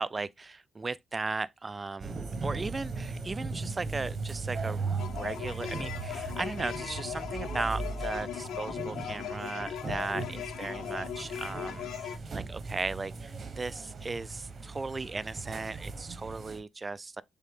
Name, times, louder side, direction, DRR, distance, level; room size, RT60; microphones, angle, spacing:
voice 1, 0.0-4.8 5.2-17.2, right 3 dB, 25° right, 0.5 m, -36 dB
sound 1, 2.0-16.6, right 4 dB, 40° right, 1.2 m, -38 dB
sound 2, 5.0-12.2, left 10 dB, 70° left, 0.7 m, -38 dB
7.4 x 3.7 x 3.7 m
cardioid pair, 90°, 0 cm